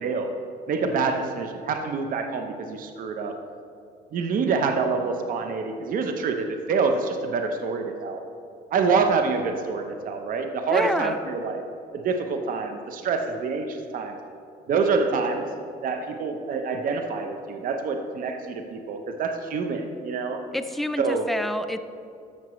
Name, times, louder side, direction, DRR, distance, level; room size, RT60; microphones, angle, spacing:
voice 1, 0.0-0.3 0.7-3.3 4.1-8.2 8.7-11.6 11.9-14.1 14.7-15.4 15.8-20.4 21.0-21.2, right 4 dB, 55° right, 5 dB, 0.8 m, -26 dB
voice 2, 10.7-11.2 20.5-21.8, left 1 dB, ahead, 9 dB, 0.4 m, -28 dB
13.5 x 5.9 x 3.1 m, 2.5 s
cardioid pair, 110°, 17 cm